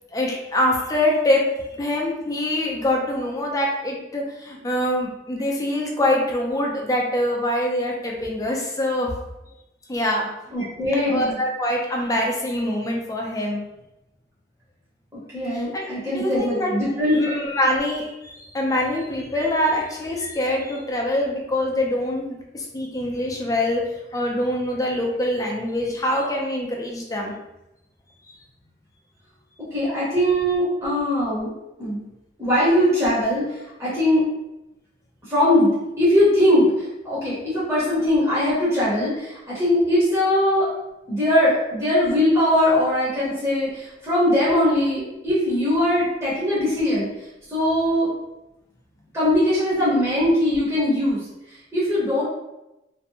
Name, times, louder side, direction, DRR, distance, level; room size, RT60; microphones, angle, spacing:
voice 1, 0.1-1.4 1.8-9.1 9.9-10.3 11.1-13.6 15.7-15.9 16.1-16.7 17.1-22.3 22.5-23.8 24.1-27.3, left 1 dB, 20° left, -1 dB, 0.4 m, -24 dB
voice 2, 10.5-11.4 15.3-17.3 29.7-31.5 31.8-32.0 32.4-34.2 35.2-40.7 41.1-47.1 47.5-48.1 49.1-51.2 51.5-52.2, left 1 dB, 15° right, -10 dB, 0.8 m, -21 dB
2.6 x 2.1 x 2.8 m, 0.93 s
head